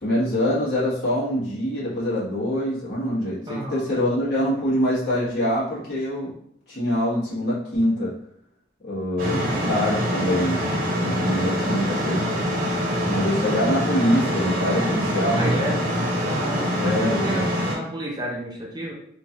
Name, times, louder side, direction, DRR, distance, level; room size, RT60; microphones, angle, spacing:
voice 1, 0.0-6.3 6.7-8.1 8.8-12.2 13.0-15.5 16.8-17.5, equal, 65° left, -8 dB, 1.4 m, -24 dB
voice 2, 3.5-3.8 9.2-9.7 15.3-15.8 16.2-18.9, equal, 20° right, -2 dB, 0.5 m, -30 dB
sound 1, 9.2-17.7, equal, 50° right, 0.9 m, -25 dB
3.0 x 2.4 x 2.7 m, 0.69 s
head